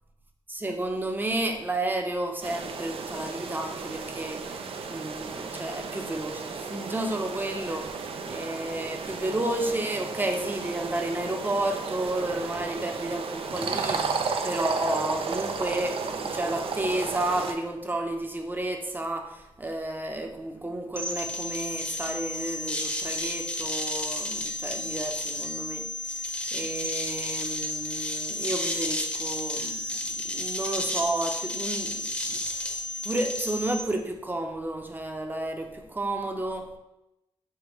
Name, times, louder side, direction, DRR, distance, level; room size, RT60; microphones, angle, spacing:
voice 1, 0.5-26.2 26.5-32.7 33.0-36.7, right 1 dB, 20° right, 4 dB, 0.7 m, -32 dB
sound 1, 2.4-17.5, right 5 dB, 65° right, 0.4 m, -34 dB
sound 2, 21.0-33.8, left 1 dB, 10° left, 0.8 m, -32 dB
4.8 x 3.4 x 3.1 m, 0.92 s
cardioid pair, 70°, 10 cm